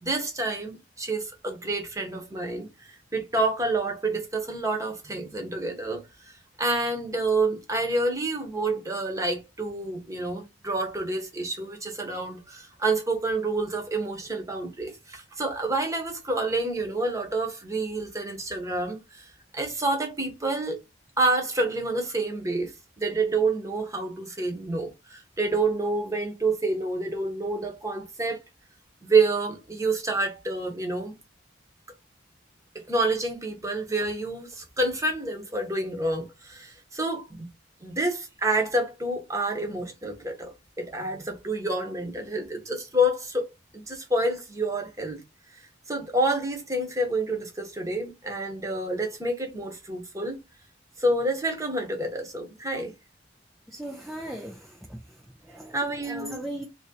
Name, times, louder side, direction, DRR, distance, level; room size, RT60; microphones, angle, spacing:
voice 1, 0.0-6.0 6.6-19.3 19.5-20.8 21.2-22.7 23.0-28.4 29.0-31.1 32.9-37.5 37.8-45.2 45.9-50.4 51.0-52.9 55.7-56.4, right 2 dB, 15° right, 1.0 m, -28 dB
voice 2, 53.7-55.8 56.0-56.6, right 1 dB, ahead, 0.4 m, -38 dB
2.9 x 2.8 x 3.8 m
head